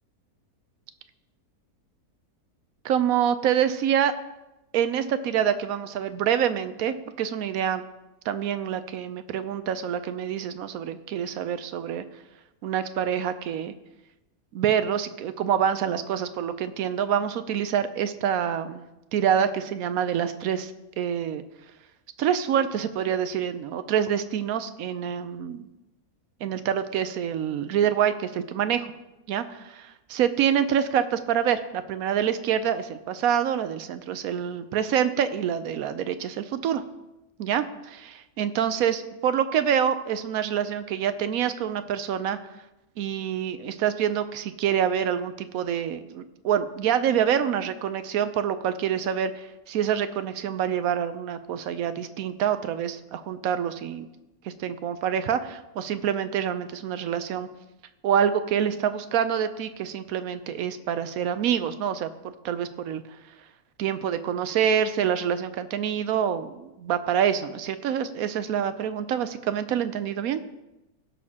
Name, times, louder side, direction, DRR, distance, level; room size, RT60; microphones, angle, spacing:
voice 1, 2.8-4.1 4.7-7.8 8.3-12.0 12.6-13.7 14.5-18.8 19.1-20.7 21.0-21.4 22.2-25.7 26.4-28.9 29.3-36.8 37.4-42.4 43.0-54.1 54.4-57.5 58.0-62.1 62.4-63.0 63.8-70.4, right 9 dB, 75° right, 12 dB, 1.0 m, -26 dB
16.5 x 6.4 x 2.8 m, 0.97 s
omnidirectional pair, 1.6 m